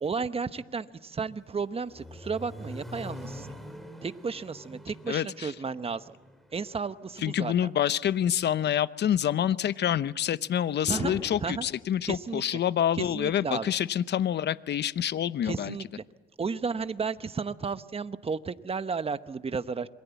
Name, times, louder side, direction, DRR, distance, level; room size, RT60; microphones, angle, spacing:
voice 1, 0.0-3.5 4.0-6.1 6.5-7.7 10.9-11.1 11.4-11.7 12.1-12.6 13.0-13.7 15.4-16.0 16.4-19.9, right 5 dB, 30° right, 12 dB, 1.0 m, -33 dB
Accelerating revving vroom, 1.3-7.4, equal, ahead, 3.6 m, -45 dB
voice 2, 5.1-5.5 7.2-15.7, left 10 dB, 60° left, 16 dB, 0.8 m, -27 dB
sound 1, 10.9-11.9, left 2 dB, 15° left, 3.0 m, -40 dB
27.0 x 22.5 x 8.2 m, 1.1 s
cardioid pair, 90°, 20 cm